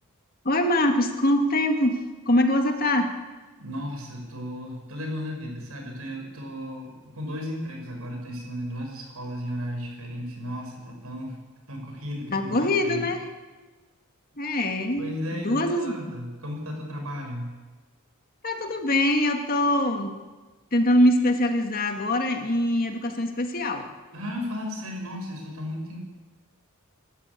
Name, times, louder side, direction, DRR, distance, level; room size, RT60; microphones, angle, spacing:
voice 1, 0.4-2.0 2.3-3.1 12.3-13.2 14.4-15.1 15.3-16.1 18.4-20.1 20.7-23.8, left 1 dB, 40° left, 4 dB, 2.0 m, -23 dB
voice 2, 3.6-11.4 11.7-13.1 15.0-17.5 24.1-26.0, equal, 80° right, 2 dB, 6.3 m, -34 dB
25.5 x 13.5 x 8.5 m, 1.3 s
head